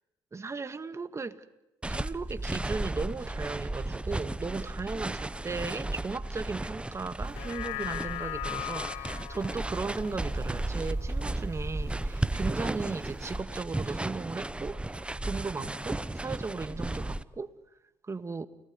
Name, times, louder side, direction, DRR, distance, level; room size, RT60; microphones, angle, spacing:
voice 1, 0.3-1.4 1.9-17.5 18.0-18.4, right 4 dB, 30° right, 1.9 m, -36 dB
sound 1, 1.8-17.2, right 2 dB, 10° right, 0.9 m, -34 dB
sound 2, 7.2-11.8 12.2-12.3, left 18 dB, 75° left, 1.1 m, -40 dB
29.5 x 19.0 x 9.8 m
supercardioid pair, 75°, 10 cm